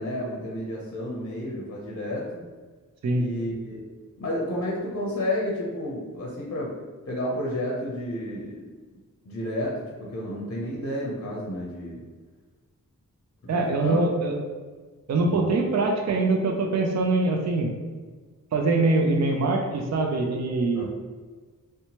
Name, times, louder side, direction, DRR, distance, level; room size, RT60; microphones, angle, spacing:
voice 1, 0.0-2.4 3.1-3.8 4.2-6.7 7.1-8.6 9.2-12.0 13.4-14.0 15.3-15.5 20.7-20.9, left 1 dB, 40° left, -3 dB, 0.6 m, -31 dB
voice 2, 13.5-14.3 15.1-17.7 18.5-20.9, right 3 dB, 50° right, 2 dB, 0.5 m, -23 dB
2.8 x 2.2 x 2.8 m, 1.4 s
wide cardioid pair, 60°, 34 cm